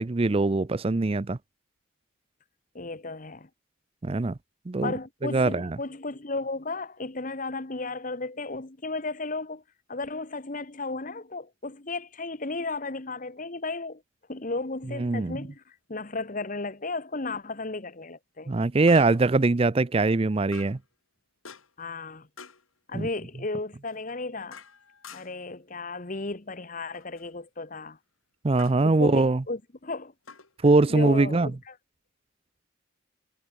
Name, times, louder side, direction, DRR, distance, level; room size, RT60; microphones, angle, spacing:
voice 1, 0.0-1.4 4.0-4.3 4.7-4.9 5.2-5.8 15.0-15.4 18.5-20.8 22.9-23.1 28.4-29.4 30.6-31.5, right 3 dB, 30° right, 0.5 m, -22 dB
voice 2, 2.7-3.5 4.8-9.6 9.9-14.0 14.3-18.6 21.8-22.3 22.9-24.6 25.1-28.0 28.8-30.1 30.9-31.8, left 3 dB, 40° left, 1.2 m, -34 dB
sound 1, 15.2-15.3 18.9-19.4 20.5-20.9 21.4-21.9 22.4-22.7 23.9-25.5 26.9-27.3 28.6-28.9 30.2-31.3, left 5 dB, 85° left, 4.4 m, -49 dB
head